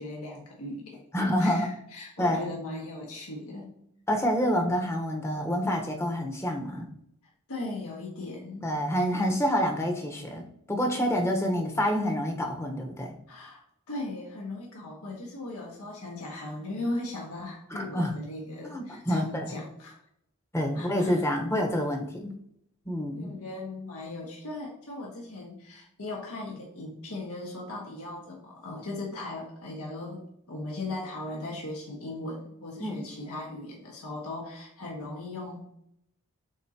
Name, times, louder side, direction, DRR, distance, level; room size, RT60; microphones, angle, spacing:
voice 1, 0.0-3.7 7.5-8.7 13.3-13.6 13.9-20.0 20.7-21.2 23.1-30.2 30.5-35.6, left 2 dB, 75° left, -2 dB, 1.6 m, -38 dB
voice 2, 1.1-1.7 2.2-2.5 4.1-6.9 8.6-10.4 10.7-13.1 17.7-18.1 18.6-19.5 20.5-22.3 22.9-23.3 32.8-33.0, equal, 10° left, 2 dB, 1.0 m, -27 dB
11.5 x 4.3 x 2.9 m, 0.73 s
head